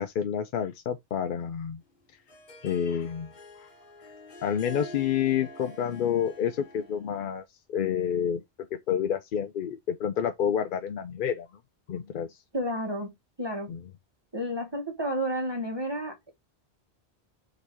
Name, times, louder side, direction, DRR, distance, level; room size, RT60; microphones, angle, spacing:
voice 1, 0.0-1.8 2.6-3.7 4.4-7.4 7.7-8.4 8.7-11.5 11.9-12.4 13.7-13.8, left 8 dB, 60° left, 0.6 m, -29 dB
Harp, 1.9-7.2, left 1 dB, 45° left, 1.4 m, -47 dB
voice 2, 12.5-13.7 14.3-16.3, equal, 25° right, 1.0 m, -31 dB
4.0 x 2.7 x 4.6 m
omnidirectional pair, 1.1 m